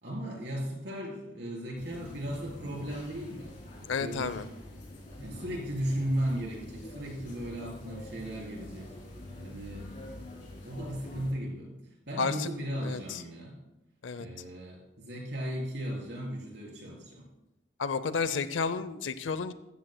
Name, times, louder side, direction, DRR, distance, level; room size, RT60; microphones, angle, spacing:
voice 1, 0.0-4.4 5.2-8.9 9.4-9.9 10.6-11.8 12.1-13.6 14.2-17.2, equal, 60° right, -2 dB, 3.8 m, -36 dB
sound 1, 1.7-11.3, left 1 dB, 40° left, 3.2 m, -46 dB
voice 2, 3.9-4.5 12.2-12.5 12.8-13.2 14.0-14.3 17.8-19.5, left 5 dB, 80° left, 14 dB, 0.6 m, -31 dB
15.0 x 13.0 x 2.2 m, 0.95 s
head